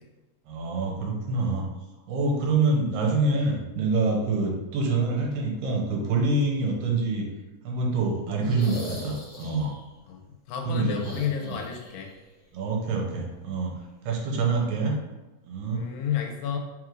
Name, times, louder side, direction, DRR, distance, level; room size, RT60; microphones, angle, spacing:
voice 1, 0.5-1.6 2.1-7.3 7.6-9.7 10.7-11.2 11.4-11.6 12.5-14.9 15.5-15.9, right 3 dB, 85° right, -1 dB, 2.3 m, -26 dB
sound 1, 8.4-9.8 10.9-12.1 12.4-12.5 14.1-14.2, left 1 dB, 60° left, 1.7 m, -40 dB
voice 2, 10.5-12.1 15.7-16.6, left 8 dB, 90° left, 3 dB, 2.3 m, -30 dB
5.3 x 2.4 x 3.1 m, 1.1 s
omnidirectional pair, 4.0 m